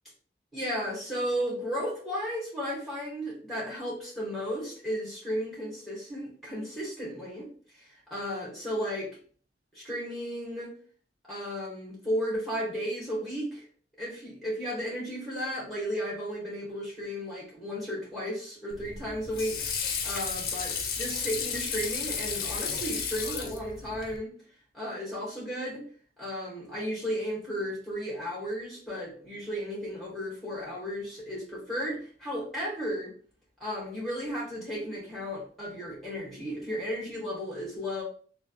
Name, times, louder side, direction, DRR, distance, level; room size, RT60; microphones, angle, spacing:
voice 1, 0.5-7.5 7.7-9.1 9.7-10.7 11.2-13.6 14.0-24.3 24.7-25.8 26.2-33.1 33.6-38.0, equal, ahead, -6 dB, 1.7 m, -34 dB
Water / Sink (filling or washing), 18.7-24.2, left 6 dB, 50° left, 0.6 m, -33 dB
3.5 x 2.7 x 2.8 m, 0.44 s
head